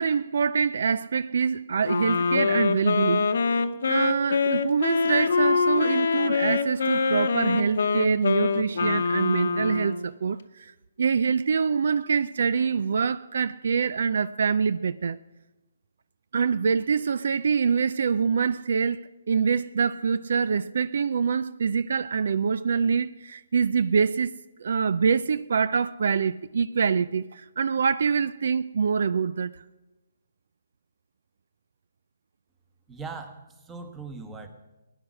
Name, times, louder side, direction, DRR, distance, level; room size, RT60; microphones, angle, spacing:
voice 1, 0.0-3.6 3.9-10.7 11.0-15.2 16.3-29.5, right 6 dB, 65° right, 0.4 m, -25 dB
Wind instrument woodwind instrument, 1.8-10.1, left 4 dB, 70° left, 0.9 m, -24 dB
voice 2, 32.9-34.5, right 4 dB, 15° right, 1.4 m, -39 dB
17.0 x 10.0 x 6.3 m
hypercardioid pair, 150°, 0 cm